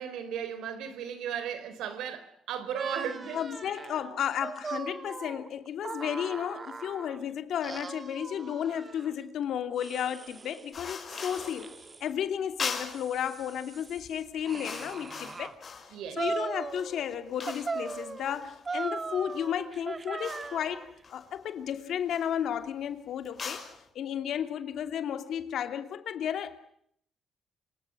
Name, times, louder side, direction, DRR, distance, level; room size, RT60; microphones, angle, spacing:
voice 1, 0.0-3.5 15.9-16.2, right 8 dB, 90° right, 4.1 m, -36 dB
sound 1, 2.7-7.2 7.6-9.1 9.8-10.7 11.1-12.1 12.7-15.5 16.1-17.1 17.5-20.9, right 4 dB, 30° right, 1.4 m, -39 dB
voice 2, 3.3-11.7 12.0-15.5 16.2-23.6 23.9-26.6, left 9 dB, 70° left, 2.8 m, -33 dB
sound 2, 10.7-11.7 12.6-13.1 13.9-14.1 14.4-16.1 16.5-19.5 20.2-20.6 21.0-21.6 22.1-22.4 23.2-23.8, left 5 dB, 40° left, 6.4 m, -40 dB
27.5 x 26.0 x 6.3 m
cardioid pair, 125°, 0 cm